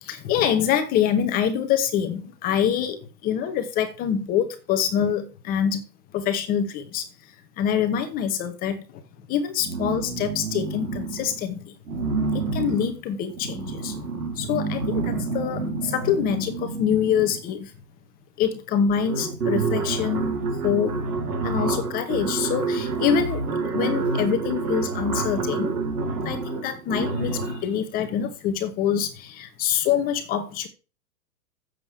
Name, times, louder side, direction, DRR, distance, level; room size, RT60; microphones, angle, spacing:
voice 1, 0.0-5.8 6.1-7.0 7.6-8.8 9.3-11.7 12.3-14.0 14.3-17.7 18.4-20.3 20.6-21.0 21.4-25.7 26.2-30.7, left 8 dB, 20° left, 1.1 m, -25 dB
sound 1, 9.6-11.4 11.9-17.5 18.5-18.6 18.8-27.7, right 4 dB, 75° right, 5.0 m, -28 dB
8.6 x 7.7 x 6.5 m
hypercardioid pair, 160°, 48 cm